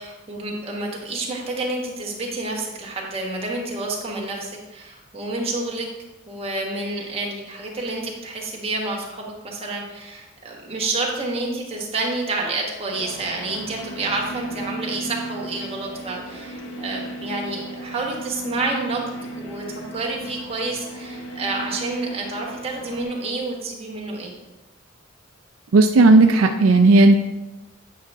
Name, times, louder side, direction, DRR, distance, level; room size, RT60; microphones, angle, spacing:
voice 1, 0.0-5.9 6.3-24.3, right 2 dB, 30° right, -2 dB, 1.5 m, -29 dB
sound 1, 12.9-23.0, right 1 dB, 70° left, 1.2 m, -35 dB
voice 2, 25.7-27.2, right 2 dB, 75° right, 6 dB, 0.4 m, -13 dB
8.4 x 5.6 x 3.5 m, 1.1 s
head